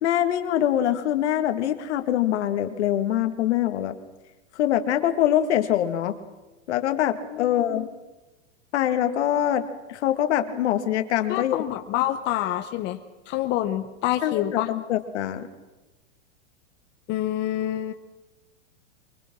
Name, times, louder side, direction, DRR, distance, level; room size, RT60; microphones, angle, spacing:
voice 1, 0.0-3.9 4.6-6.2 6.7-7.9 8.7-11.6 14.2-15.5, left 11 dB, 65° left, 8 dB, 2.1 m, -24 dB
voice 2, 7.3-7.9 11.3-13.0 13.3-14.7 17.1-17.9, left 13 dB, 30° left, 7 dB, 0.9 m, -27 dB
24.0 x 19.5 x 6.2 m, 1.1 s
supercardioid pair, 145°, 37 cm